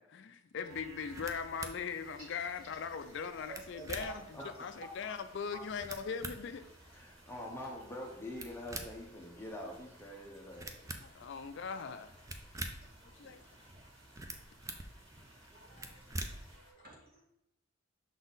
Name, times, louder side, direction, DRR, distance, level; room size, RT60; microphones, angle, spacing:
voice 1, 0.0-4.2 4.6-6.7 10.6-10.7 11.0-12.1 13.1-13.4, left 6 dB, 55° left, 0.4 m, -40 dB
Livestock farm animals working animals, 0.5-1.4, right 4 dB, 75° right, 0.6 m, -56 dB
sound 1, 0.7-16.6, right 2 dB, 15° right, 0.3 m, -48 dB
sound 2, 1.0-16.7, right 1 dB, 60° right, 2.1 m, -62 dB
voice 2, 3.5-4.9 5.5-5.6 15.5-16.3 16.5-17.2, right 3 dB, 45° right, 1.9 m, -50 dB
voice 3, 6.9-10.7, left 1 dB, 10° left, 0.7 m, -45 dB
6.1 x 4.0 x 3.9 m
head